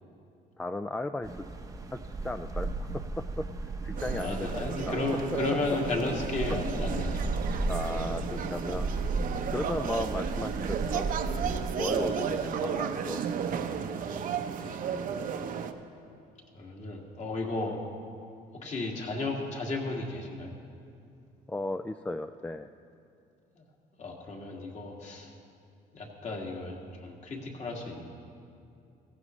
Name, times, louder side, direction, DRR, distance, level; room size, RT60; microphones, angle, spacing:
voice 1, 0.6-1.3 1.9-3.5 3.8-5.0 7.7-8.9 9.5-11.1 11.8-13.2 14.9-15.0 21.5-22.7, left 2 dB, 10° left, 9 dB, 0.3 m, -35 dB
sound 1, 1.2-11.7, right 3 dB, 20° right, 0.8 m, -35 dB
sound 2, 4.0-15.7, right 7 dB, 55° right, 0.8 m, -33 dB
voice 2, 4.1-7.6 9.1-9.2 12.0-12.2 13.8-14.0 14.6-14.9 16.5-17.8 18.5-20.5 23.6-23.7 24.0-25.3 25.9-28.1, left 3 dB, 45° left, 0 dB, 2.1 m, -34 dB
15.5 x 15.0 x 3.2 m, 2.6 s
cardioid pair, 110°, 17 cm